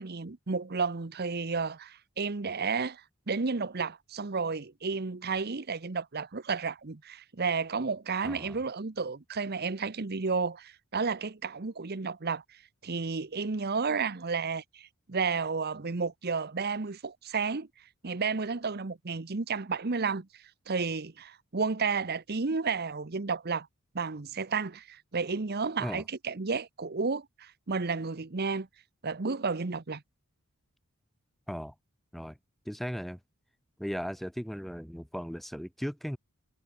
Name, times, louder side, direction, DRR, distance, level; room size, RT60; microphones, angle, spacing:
voice 1, 0.0-23.7 23.9-28.7 29.0-30.0, right 4 dB, 45° right, 0.9 m, -32 dB
voice 2, 8.2-8.6 25.8-26.0 31.5-31.7 32.1-32.4 32.6-33.2 33.8-36.2, equal, ahead, 0.9 m, -37 dB
head